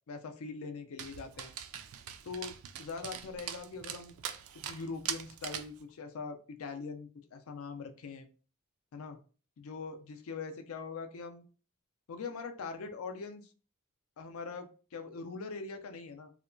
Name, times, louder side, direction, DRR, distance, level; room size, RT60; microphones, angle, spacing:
voice 1, 0.1-1.5 2.2-2.5 2.8-4.2 4.6-8.3 8.9-9.2 9.6-11.5 12.1-13.5 14.2-16.3, left 4 dB, 70° left, 6 dB, 0.4 m, -42 dB
Dog, 1.0-5.8, right 9 dB, 75° right, 0.3 m, -42 dB
2.8 x 2.1 x 2.5 m, 0.37 s
head